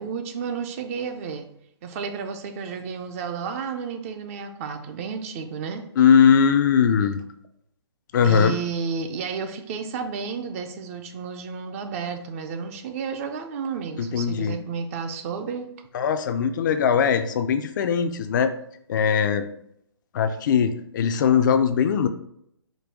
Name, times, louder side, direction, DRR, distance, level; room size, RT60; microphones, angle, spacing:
voice 1, 0.0-1.5 1.8-5.9 8.2-15.7, right 6 dB, 30° right, 7 dB, 0.5 m, -32 dB
voice 2, 6.0-7.2 8.1-8.6 14.0-14.6 15.9-18.5 18.9-19.4 20.1-22.1, left 7 dB, 45° left, 8 dB, 0.4 m, -20 dB
5.1 x 2.2 x 4.7 m, 0.72 s
hypercardioid pair, 140°, 14 cm